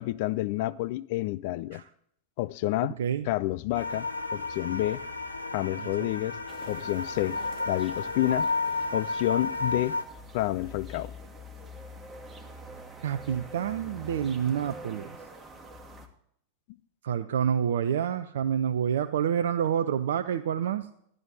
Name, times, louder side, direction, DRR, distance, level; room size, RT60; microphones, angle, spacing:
voice 1, 0.0-1.8 2.4-2.9 3.2-5.0 5.5-6.4 6.7-7.4 7.7-8.5 8.9-9.9 10.3-11.1, left 16 dB, 50° left, 0.4 m, -29 dB
sound 1, 3.7-10.0, left 3 dB, 85° left, 0.9 m, -32 dB
sound 2, 6.5-16.1, equal, 15° right, 1.6 m, -46 dB
voice 2, 13.0-15.1 17.0-20.9, right 8 dB, 60° right, 0.5 m, -28 dB
12.5 x 11.0 x 3.9 m
figure-of-eight pair, 90°, 0 cm